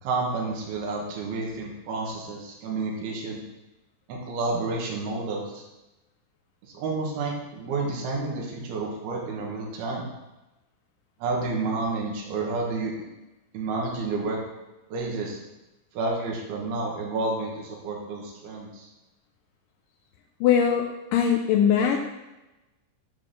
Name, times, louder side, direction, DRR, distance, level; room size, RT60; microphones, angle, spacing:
voice 1, 0.0-3.4 4.1-5.6 6.6-10.1 11.2-12.9 13.5-14.4 14.9-15.4 15.9-18.9, right 3 dB, 80° right, -2 dB, 3.6 m, -30 dB
voice 2, 20.4-22.0, left 8 dB, 75° left, 1 dB, 2.1 m, -21 dB
12.0 x 4.1 x 6.8 m, 1.0 s
omnidirectional pair, 4.5 m